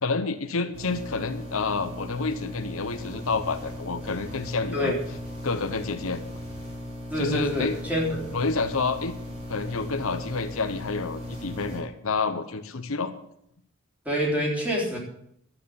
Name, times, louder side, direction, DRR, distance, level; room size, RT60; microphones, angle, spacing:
voice 1, 0.0-5.0 5.4-6.2 7.2-7.8 8.3-9.2 9.5-13.1, left 4 dB, 75° left, 9 dB, 1.0 m, -29 dB
sound 1, 0.7-11.8, left 1 dB, 30° right, 6.2 m, -38 dB
voice 2, 7.1-8.3 14.1-15.0, equal, 5° right, -2 dB, 3.7 m, -26 dB
12.5 x 9.3 x 7.0 m, 0.72 s
head